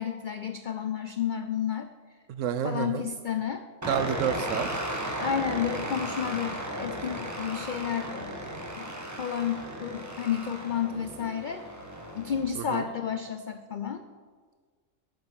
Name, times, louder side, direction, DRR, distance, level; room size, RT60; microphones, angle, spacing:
voice 1, 0.0-1.9 2.6-3.6 5.2-8.5 8.8-8.9 9.2-11.7 12.1-14.0, left 8 dB, 70° left, 8 dB, 0.4 m, -31 dB
voice 2, 2.3-3.1 3.9-4.7 12.6-12.9, right 8 dB, 70° right, 12 dB, 0.9 m, -29 dB
sound 1, 3.8-12.5, right 1 dB, 15° right, 1.3 m, -35 dB
9.3 x 7.7 x 7.4 m, 1.6 s
omnidirectional pair, 1.5 m